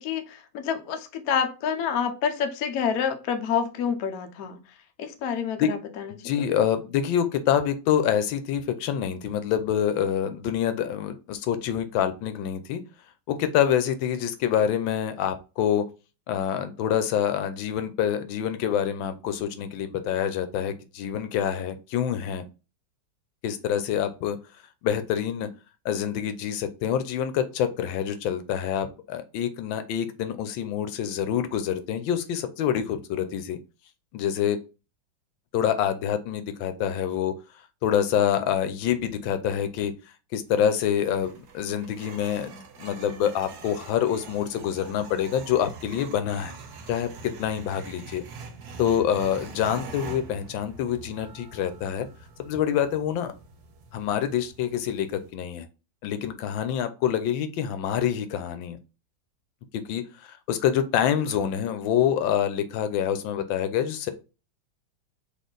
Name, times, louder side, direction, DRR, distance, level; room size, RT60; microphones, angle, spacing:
voice 1, 0.0-4.6 5.0-6.5, left 7 dB, 60° left, 1.0 m, -28 dB
voice 2, 6.1-12.8 13.3-15.8 16.3-22.4 23.4-24.4 24.8-25.5 25.8-33.6 34.1-34.6 35.5-37.3 37.8-39.9 40.3-46.6 46.9-48.2 48.8-52.1 52.4-53.3 53.9-55.6 56.0-58.8 59.7-64.1, left 9 dB, 85° left, 1.4 m, -26 dB
sound 1, 40.5-55.3, right 4 dB, 65° right, 1.1 m, -44 dB
4.3 x 3.1 x 3.8 m
omnidirectional pair, 2.1 m